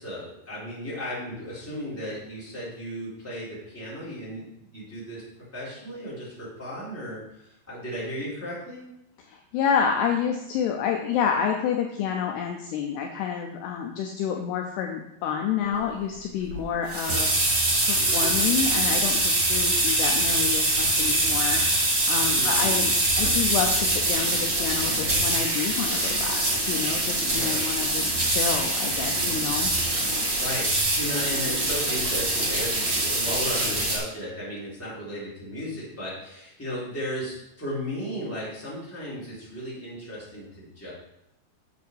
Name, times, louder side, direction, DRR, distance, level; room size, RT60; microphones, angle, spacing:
voice 1, 0.0-5.2 5.5-8.8 22.3-22.8 27.2-27.7 30.4-40.9, equal, 5° left, -9 dB, 3.0 m, -35 dB
voice 2, 9.3-17.3 17.8-21.6 22.1-29.7, left 7 dB, 80° left, 2 dB, 2.5 m, -29 dB
sound 1, 16.5-34.0, right 1 dB, 65° right, 0.7 m, -24 dB
8.2 x 7.0 x 4.7 m, 0.85 s
omnidirectional pair, 5.2 m